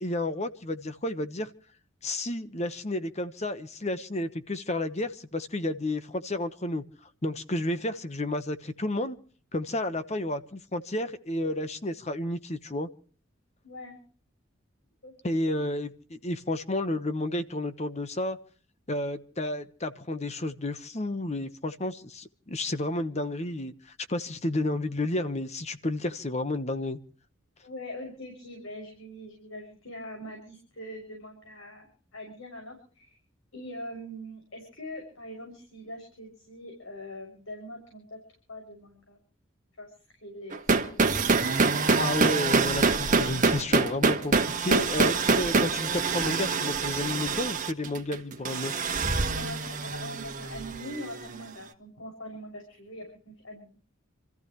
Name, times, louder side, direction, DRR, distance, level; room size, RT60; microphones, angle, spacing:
voice 1, 0.0-1.5 2.0-6.8 7.2-9.2 9.5-12.9 15.2-18.4 18.9-23.7 24.1-27.0 41.9-48.7, left 1 dB, 35° left, 1.1 m, -31 dB
voice 2, 13.6-14.0 15.0-15.1 27.6-33.2 33.5-38.2 38.5-39.2 39.8-39.9 40.2-41.2 49.2-53.8, left 1 dB, 75° left, 6.4 m, -42 dB
sound 1, 40.5-51.3, right 4 dB, 40° right, 1.5 m, -25 dB
28.5 x 14.5 x 3.1 m
head